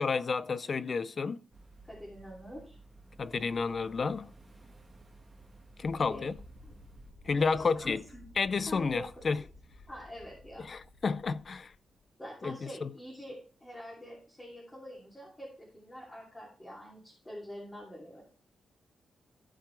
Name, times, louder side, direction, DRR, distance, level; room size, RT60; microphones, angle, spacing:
voice 1, 0.0-1.4 3.2-4.3 5.8-6.3 7.3-8.0 8.4-9.4 10.6-11.7 12.4-12.9, left 4 dB, 40° left, 0.3 m, -31 dB
sound 1, 1.5-7.1, right 2 dB, 20° right, 1.7 m, -55 dB
voice 2, 1.8-2.8 6.0-6.3 7.3-8.2 8.6-9.3 9.9-10.7 12.2-18.2, equal, 10° left, 2.7 m, -45 dB
sound 2, 5.8-12.0, left 1 dB, 85° right, 2.0 m, -55 dB
15.0 x 4.9 x 3.3 m
wide cardioid pair, 145°, 0 cm